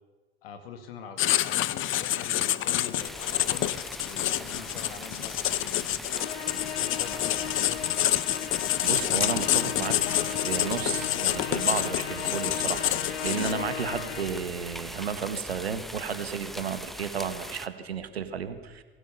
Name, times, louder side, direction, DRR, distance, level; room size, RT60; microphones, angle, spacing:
voice 1, 0.4-5.9 6.5-7.9, left 7 dB, 70° left, 8 dB, 2.1 m, -44 dB
Writing, 1.2-13.8, left 13 dB, 40° left, 0.9 m, -28 dB
sound 1, 3.0-17.7, equal, ahead, 1.0 m, -41 dB
Musical instrument, 6.1-14.6, left 8 dB, 90° left, 0.5 m, -37 dB
voice 2, 8.8-18.8, right 7 dB, 85° right, 10 dB, 1.6 m, -33 dB
22.5 x 16.5 x 7.0 m, 1.3 s
figure-of-eight pair, 70°, 31 cm